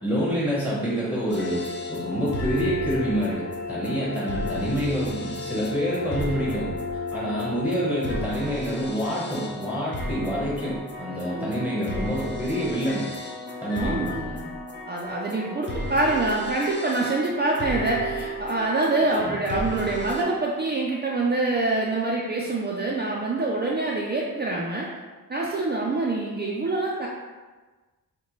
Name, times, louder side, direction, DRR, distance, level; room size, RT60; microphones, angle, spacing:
voice 1, 0.0-1.6 1.9-6.7 7.1-13.1 13.6-14.2 19.1-19.3, equal, 15° left, -7 dB, 0.9 m, -27 dB
sound 1, 1.3-20.2, left 1 dB, 30° left, 0.6 m, -34 dB
voice 2, 11.3-11.6 13.7-14.5 14.9-24.9 25.3-27.1, right 2 dB, 30° right, -3 dB, 0.4 m, -26 dB
6.4 x 2.2 x 3.0 m, 1.3 s
wide cardioid pair, 125°, 37 cm